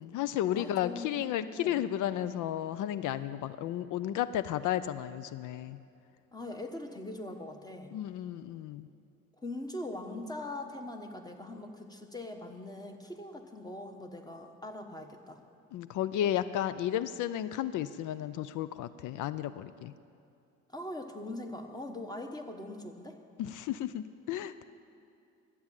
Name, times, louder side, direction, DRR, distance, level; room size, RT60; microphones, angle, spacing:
voice 1, 0.0-5.8 7.9-8.9 15.7-19.9 23.4-24.6, left 11 dB, 80° left, 14 dB, 0.5 m, -33 dB
voice 2, 0.5-1.1 1.5-1.8 6.3-7.9 9.4-15.4 20.7-23.2, left 1 dB, 15° left, 5 dB, 1.3 m, -41 dB
12.5 x 8.5 x 8.9 m, 2.6 s
cardioid pair, 90°, 30 cm